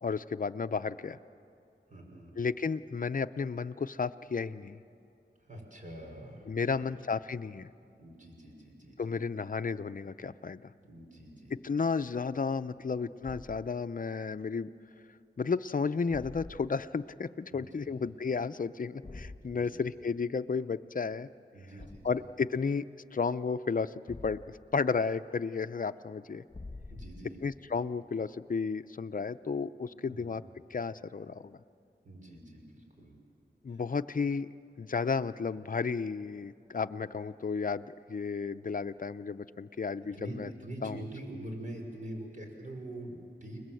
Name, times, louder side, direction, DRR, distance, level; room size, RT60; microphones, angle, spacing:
voice 1, 0.0-1.2 2.4-4.8 6.5-7.7 9.0-10.7 11.6-14.7 15.4-21.3 22.0-22.8 23.1-26.4 27.4-30.4 30.7-31.6 33.6-34.5 34.8-40.5 40.8-41.0, left 5 dB, 50° left, 11 dB, 0.6 m, -33 dB
voice 2, 1.9-2.3 5.4-7.0 8.0-9.2 10.8-11.8 12.7-12.8 17.5-18.4 19.5-19.8 21.5-22.2 26.9-27.4 30.1-30.3 32.0-33.2 33.7-33.8 40.1-43.6, right 1 dB, 45° right, 0 dB, 5.7 m, -45 dB
Thump thud, 13.2-13.7 16.1-16.8 19.0-19.5 21.8-22.3 24.1-24.7 26.5-27.5, left 2 dB, 35° left, 1.6 m, -46 dB
30.0 x 21.0 x 7.8 m, 2.5 s
wide cardioid pair, 85°, 18 cm